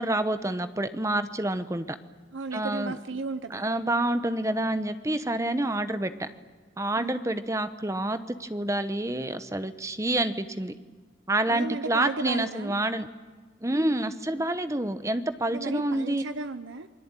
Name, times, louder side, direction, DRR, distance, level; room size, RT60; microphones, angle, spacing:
voice 1, 0.0-2.0 2.5-3.0 3.5-6.3 6.8-10.7 11.3-13.1 13.6-16.2, right 1 dB, 15° right, 11 dB, 0.9 m, -28 dB
voice 2, 2.3-3.6 7.0-7.2 11.5-12.8 15.5-16.9, right 3 dB, 80° right, 10 dB, 0.8 m, -34 dB
28.0 x 21.0 x 9.0 m, 1.4 s
head